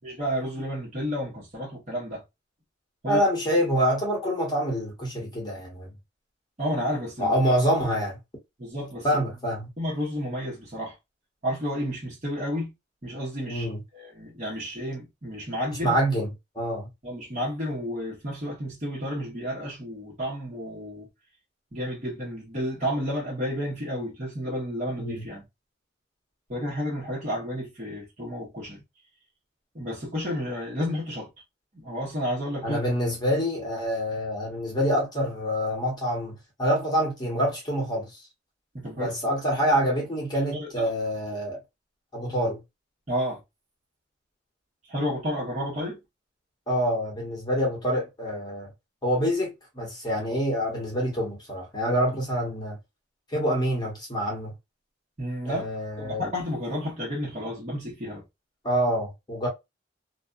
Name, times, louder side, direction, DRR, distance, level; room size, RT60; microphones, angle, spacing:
voice 1, 0.0-2.2 3.0-3.2 6.6-7.3 8.6-9.1 9.8-10.9 11.4-12.7 13.0-13.7 13.9-15.9 17.0-21.1 21.7-25.4 26.5-28.8 29.7-31.3 31.7-32.8 38.7-39.1 40.5-40.9 43.1-43.4 44.9-46.0 55.2-55.6 56.0-58.2, equal, 40° right, 1.1 m, -31 dB
voice 2, 3.1-5.9 7.2-8.2 9.0-9.7 13.5-13.8 15.8-16.3 16.5-16.9 25.0-25.2 32.6-38.2 39.0-41.6 42.1-42.6 46.7-48.7 49.0-52.8 53.3-54.5 55.4-56.2 58.6-59.5, equal, 20° left, 1.0 m, -26 dB
2.6 x 2.3 x 2.4 m
head